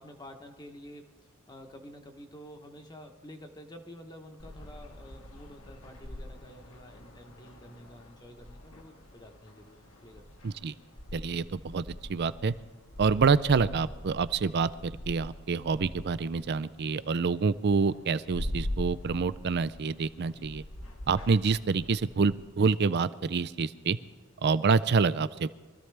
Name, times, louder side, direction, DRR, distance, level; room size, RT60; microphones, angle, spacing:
voice 1, 0.0-10.2 20.3-20.5, equal, 20° left, 4 dB, 1.0 m, -49 dB
sound 1, 4.4-22.4, left 1 dB, 75° left, 1.7 m, -43 dB
voice 2, 10.4-10.7 11.1-11.8 12.1-12.5 13.0-20.6 21.1-24.0 24.4-25.5, right 5 dB, 50° right, 15 dB, 0.4 m, -27 dB
23.5 x 14.0 x 3.4 m, 1.3 s
head